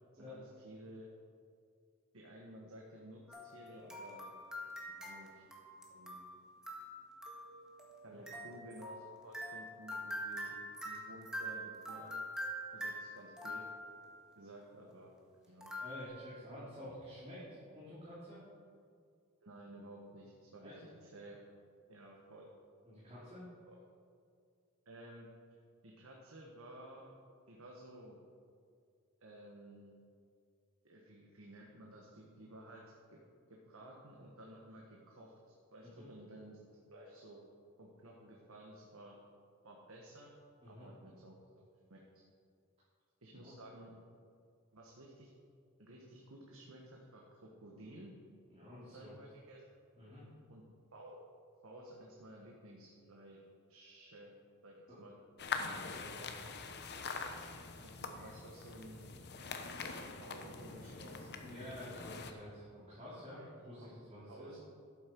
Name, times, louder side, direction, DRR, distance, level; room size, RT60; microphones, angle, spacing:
voice 1, 0.1-1.1 2.1-4.3 4.9-5.4 5.9-6.2 8.0-12.2 12.7-13.6 14.3-15.1 15.5-15.7 19.4-21.4 21.9-22.5 23.7-23.8 24.8-25.3 25.8-27.2 27.5-28.2 29.2-29.9 30.8-33.2 33.5-35.4 35.7-36.6 36.9-37.4 37.8-39.2 39.6-40.3 40.7-41.6 41.9-42.0 43.2-43.9 44.7-45.3 45.8-48.1 48.9-49.6 50.5-50.6 50.9-51.2 51.6-53.4 53.7-54.3 54.6-55.1 55.9-56.3 56.6-56.7 57.8-59.1 59.7-61.3 63.4-63.5 63.8-63.9 64.3-64.7, right 1 dB, 70° right, -2 dB, 1.4 m, -54 dB
sound 1, 3.3-14.2 15.6-16.1, equal, 5° right, 1.4 m, -45 dB
voice 2, 15.8-17.4 17.7-18.4 20.6-20.8 22.8-23.5 35.8-36.1 40.6-40.9 43.3-43.5 48.5-49.1 50.0-50.2 54.9-55.0 55.5-56.1 56.4-56.5 61.4-64.5, left 1 dB, 30° right, -10 dB, 3.2 m, -50 dB
sound 2, 55.4-62.3, left 5 dB, 50° left, 0.9 m, -44 dB
12.0 x 8.8 x 4.7 m, 2.3 s
head